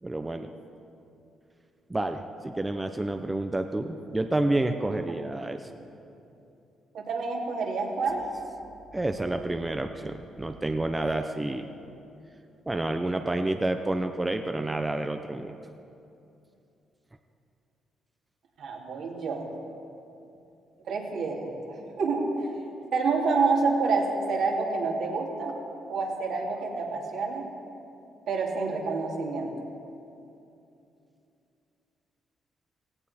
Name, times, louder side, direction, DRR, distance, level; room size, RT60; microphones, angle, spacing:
voice 1, 0.0-0.5 1.9-5.7 8.9-11.7 12.7-15.5, right 2 dB, 15° right, 6 dB, 0.7 m, -29 dB
voice 2, 6.9-8.2 18.6-19.5 20.9-22.5 22.9-25.5 25.9-27.5 28.3-29.5, right 4 dB, 75° right, -1 dB, 2.6 m, -28 dB
17.5 x 16.0 x 4.3 m, 2.7 s
cardioid pair, 90°, 0 cm